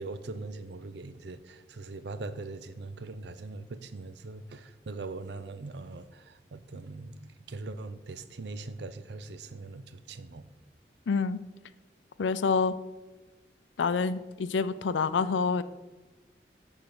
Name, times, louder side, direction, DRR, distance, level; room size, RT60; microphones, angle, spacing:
voice 1, 0.0-7.2 7.5-10.4, right 3 dB, 70° right, 12 dB, 0.5 m, -41 dB
voice 2, 11.1-11.4 12.2-12.7 13.8-15.6, left 5 dB, 90° left, 14 dB, 0.4 m, -27 dB
10.0 x 3.6 x 6.0 m, 1.2 s
head